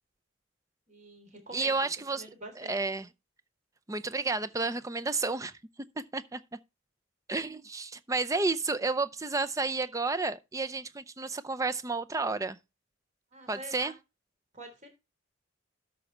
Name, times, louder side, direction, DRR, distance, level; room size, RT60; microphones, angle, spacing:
voice 1, 0.9-1.8 2.1-2.8 13.3-13.9 14.5-14.9, right 1 dB, 35° right, 3.4 m, -46 dB
voice 2, 1.5-2.3 2.6-3.1 3.9-5.5 6.1-6.4 7.3-12.6 13.5-13.9, right 3 dB, 15° right, 0.5 m, -31 dB
13.0 x 5.3 x 4.3 m
head